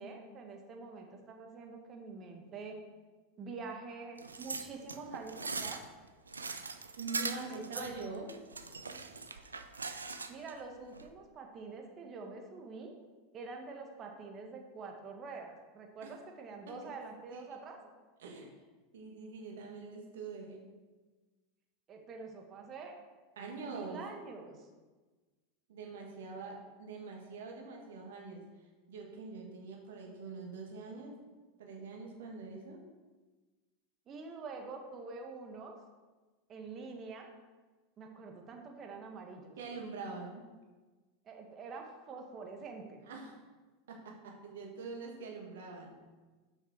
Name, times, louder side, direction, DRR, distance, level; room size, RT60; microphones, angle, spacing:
voice 1, 0.0-2.8 3.4-5.8 7.3-8.0 10.3-12.9 13.3-17.8 21.9-22.9 23.6-24.7 34.1-35.7 36.5-37.3 38.0-39.6 41.2-43.0, right 4 dB, 35° right, 2 dB, 1.5 m, -46 dB
sound 1, 4.2-10.5 10.9-11.1, right 4 dB, 90° right, 0.5 m, -41 dB
voice 2, 7.0-8.3 16.0-16.1 16.7-16.9 17.3-17.4 18.2-18.5 18.9-20.7 23.4-24.0 25.7-28.4 28.9-31.2 31.6-32.8 39.6-40.4 43.1-43.4 43.9-46.0, right 4 dB, 70° right, 0 dB, 1.8 m, -44 dB
7.0 x 5.9 x 4.6 m, 1.3 s
hypercardioid pair, 90°, 0 cm